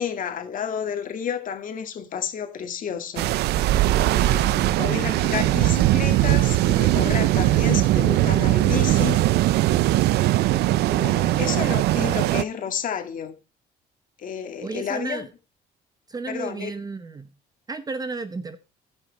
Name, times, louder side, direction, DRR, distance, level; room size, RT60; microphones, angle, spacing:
voice 1, 0.0-3.3 4.1-9.2 9.8-10.1 10.9-13.4 14.2-15.3 16.3-16.7, left 8 dB, 50° left, 2.1 m, -31 dB
sound 1, 3.2-12.4, right 15 dB, 80° right, 0.6 m, -20 dB
voice 2, 14.6-15.3 16.1-17.3 17.7-18.6, right 3 dB, 20° right, 0.8 m, -33 dB
14.0 x 5.8 x 4.1 m
cardioid pair, 110°, 17 cm